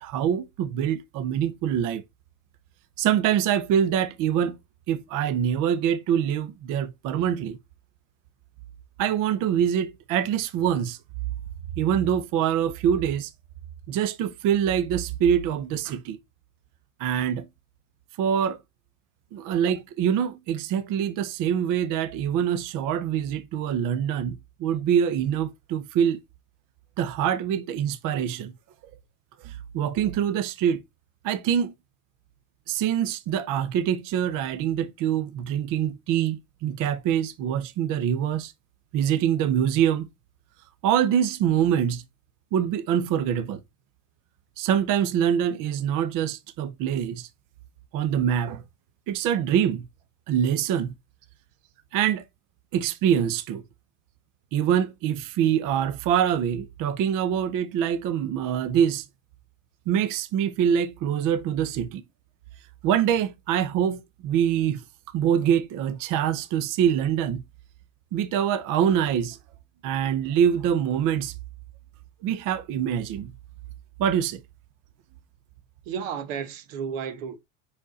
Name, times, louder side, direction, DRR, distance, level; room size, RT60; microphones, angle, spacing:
voice 1, 0.0-2.0 3.0-4.6 4.9-7.6 9.0-11.0 11.8-13.3 13.9-16.2 17.0-17.5 18.2-18.6 19.3-26.2 27.0-28.5 29.4-30.8 31.2-31.7 32.7-38.5 38.9-40.1 40.8-42.0 42.5-43.6 44.6-47.3 47.9-48.6 49.1-49.9 50.3-50.9 51.9-52.2 52.7-53.6 54.5-59.1 59.9-62.0 62.8-67.4 68.1-69.4 69.8-71.3 72.2-73.3 74.0-74.4, right 9 dB, 55° right, 0.8 m, -24 dB
voice 2, 75.8-77.4, right 7 dB, 85° right, 1.1 m, -33 dB
5.1 x 5.0 x 4.0 m
supercardioid pair, 110°, 39 cm